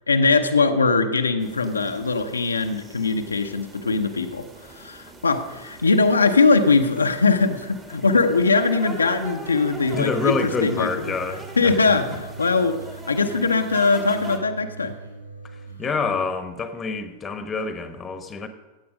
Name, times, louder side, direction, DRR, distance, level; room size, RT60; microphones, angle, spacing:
voice 1, 0.1-11.1 11.6-12.8 13.1-14.9, left 4 dB, 75° left, 5 dB, 0.8 m, -21 dB
sound 1, 1.4-14.4, right 2 dB, 20° right, 2.3 m, -41 dB
sound 2, 9.8-16.2, right 3 dB, 85° right, 1.7 m, -41 dB
voice 2, 9.9-12.0 15.8-18.5, left 4 dB, 20° left, 9 dB, 1.2 m, -27 dB
15.5 x 8.6 x 5.1 m, 1.2 s
figure-of-eight pair, 90°, 0 cm